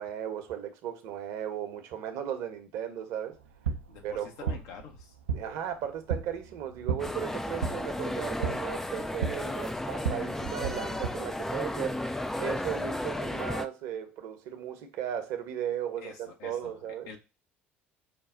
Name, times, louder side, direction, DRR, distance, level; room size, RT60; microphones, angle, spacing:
voice 1, 0.0-3.4 4.0-4.6 5.3-12.0 12.4-17.1, right 9 dB, 55° right, 0.8 m, -36 dB
sound 1, 3.3-11.1, right 6 dB, 75° right, 0.5 m, -35 dB
voice 2, 3.9-5.1 16.0-16.7 17.1-17.2, left 6 dB, 60° left, 0.9 m, -46 dB
sound 2, 7.0-13.7, left 1 dB, 5° left, 0.3 m, -34 dB
5.2 x 2.3 x 3.6 m
figure-of-eight pair, 60°, 6 cm